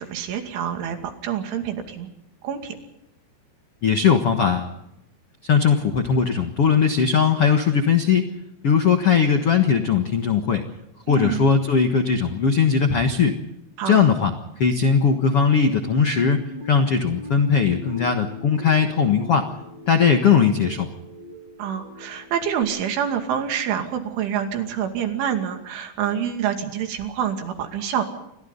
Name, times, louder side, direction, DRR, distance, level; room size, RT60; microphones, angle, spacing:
voice 1, 0.0-2.1 2.4-2.8 11.1-11.5 13.8-14.1 21.6-28.0, right 9 dB, 85° right, 5 dB, 4.9 m, -27 dB
voice 2, 3.8-4.7 5.4-8.2 8.6-10.6 11.1-13.4 13.8-14.3 14.6-19.5 19.9-20.9, left 6 dB, 90° left, 6 dB, 1.2 m, -19 dB
sound 1, 15.6-22.6, equal, 30° right, 2.7 m, -41 dB
30.0 x 24.0 x 4.0 m, 0.85 s
omnidirectional pair, 5.4 m